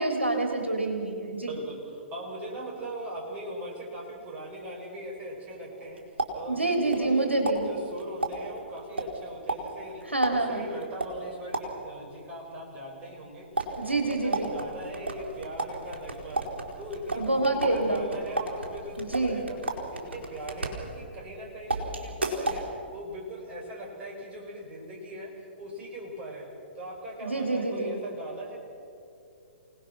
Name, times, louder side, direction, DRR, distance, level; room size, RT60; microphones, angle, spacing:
voice 1, 0.0-1.5 6.5-7.6 10.1-10.6 13.8-14.5 17.2-18.0 19.0-19.4 27.2-27.9, right 2 dB, 85° right, 3 dB, 3.1 m, -27 dB
voice 2, 1.5-6.0 6.3-7.3 7.6-10.0 10.3-13.5 13.8-16.5 16.8-19.6 19.9-22.7 22.9-25.3 25.6-26.5 26.7-28.6, right 1 dB, 25° right, -2 dB, 5.9 m, -40 dB
sound 1, 5.7-7.2 7.5-12.0 13.5-21.3 21.7-22.7, right 2 dB, 70° right, 4.2 m, -34 dB
29.0 x 19.0 x 6.0 m, 2.7 s
figure-of-eight pair, 120°, 6 cm